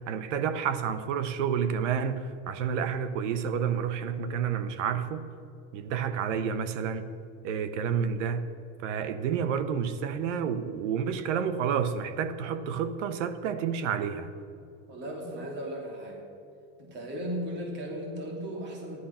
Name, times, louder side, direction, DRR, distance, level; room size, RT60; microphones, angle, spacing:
voice 1, 0.0-5.3 5.7-7.1 7.4-8.5 8.8-14.3, right 7 dB, 85° right, 1.1 m, -30 dB
voice 2, 14.9-16.2 16.8-19.0, equal, 30° right, 2.8 m, -36 dB
14.5 x 11.5 x 5.7 m
supercardioid pair, 155°, 36 cm